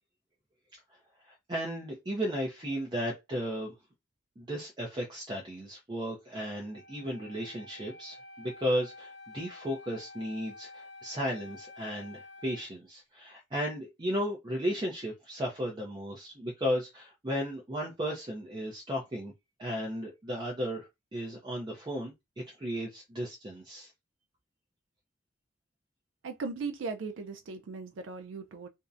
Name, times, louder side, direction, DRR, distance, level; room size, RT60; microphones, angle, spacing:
voice 1, 1.2-3.7 4.4-19.3 19.6-23.9, equal, 25° right, 0.5 m, -35 dB
Wind instrument woodwind instrument, 6.7-12.6, left 2 dB, 90° left, 0.6 m, -50 dB
voice 2, 26.2-28.7, right 4 dB, 80° right, 0.4 m, -38 dB
2.6 x 2.1 x 2.4 m
head